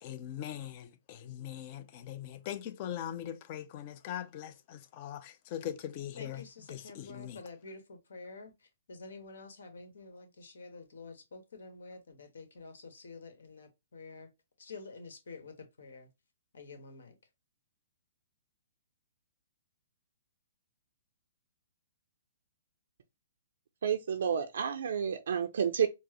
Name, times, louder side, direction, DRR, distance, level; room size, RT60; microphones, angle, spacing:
voice 1, 0.0-7.4, left 11 dB, 40° left, 0.5 m, -41 dB
voice 2, 6.2-14.3 14.6-16.1 16.5-17.1, left 4 dB, 75° left, 1.2 m, -49 dB
voice 3, 23.8-25.9, right 7 dB, 70° right, 0.4 m, -30 dB
4.4 x 2.0 x 3.0 m
hypercardioid pair, 135°, 0 cm